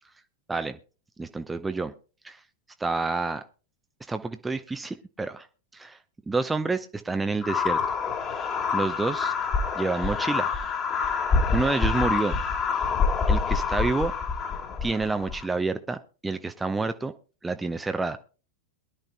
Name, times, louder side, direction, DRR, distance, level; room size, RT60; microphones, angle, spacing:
voice 1, 0.5-0.8 1.2-1.9 2.2-2.4 2.8-3.4 4.1-5.5 5.7-6.0 6.3-7.8 8.7-9.3 9.8-10.5 11.5-12.4 13.3-14.1 14.8-16.0 16.2-17.1 17.4-18.2, right 3 dB, 10° right, 9 dB, 0.7 m, -28 dB
sound 1, 7.4-15.5, left 5 dB, 30° left, 1.9 m, -26 dB
22.5 x 11.5 x 2.2 m, 0.35 s
figure-of-eight pair, 90°, 0 cm